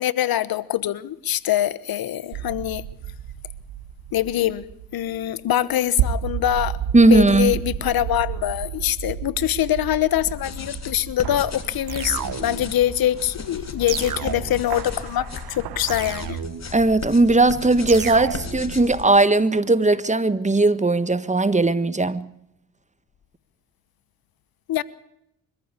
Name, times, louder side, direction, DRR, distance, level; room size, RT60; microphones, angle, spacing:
voice 1, 0.0-2.8 4.1-4.7 4.9-6.8 7.1-16.4 24.7-24.8, left 12 dB, 70° left, 1.2 m, -24 dB
sound 1, 2.3-16.0, right 9 dB, 85° right, 1.3 m, -32 dB
voice 2, 6.9-7.5 16.7-22.3, right 2 dB, 20° right, 1.4 m, -18 dB
sound 2, 10.2-19.0, left 4 dB, 45° left, 3.2 m, -36 dB
sound 3, 11.9-12.8 13.9-14.8 15.9-16.8 17.9-18.8, right 8 dB, 55° right, 1.5 m, -32 dB
24.5 x 14.5 x 8.3 m
cardioid pair, 70°, 37 cm